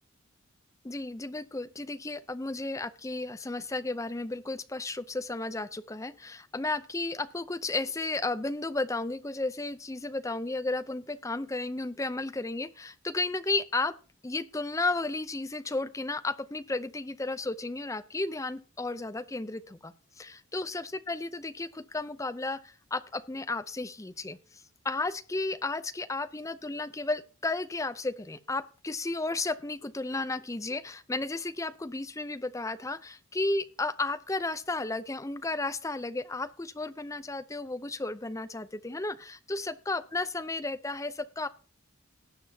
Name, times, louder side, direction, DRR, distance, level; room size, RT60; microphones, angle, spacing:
voice 1, 0.8-13.9 14.2-24.4 24.8-41.5, left 2 dB, 15° left, 11 dB, 0.5 m, -33 dB
18.5 x 7.7 x 2.8 m, 0.37 s
head